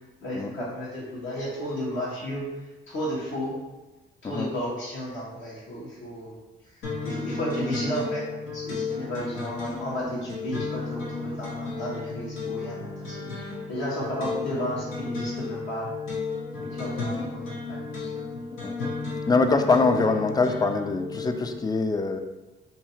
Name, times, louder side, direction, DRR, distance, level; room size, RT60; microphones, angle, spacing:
voice 1, 0.2-2.5 2.9-3.6 4.2-6.4 7.0-15.9 16.6-18.1, equal, 70° left, -4 dB, 1.2 m, -33 dB
sound 1, 6.8-21.6, left 4 dB, 90° left, 1.0 m, -34 dB
voice 2, 18.6-18.9 19.3-22.2, left 3 dB, 20° left, 7 dB, 0.3 m, -23 dB
2.8 x 2.8 x 4.2 m, 1.1 s
cardioid pair, 90°, 20 cm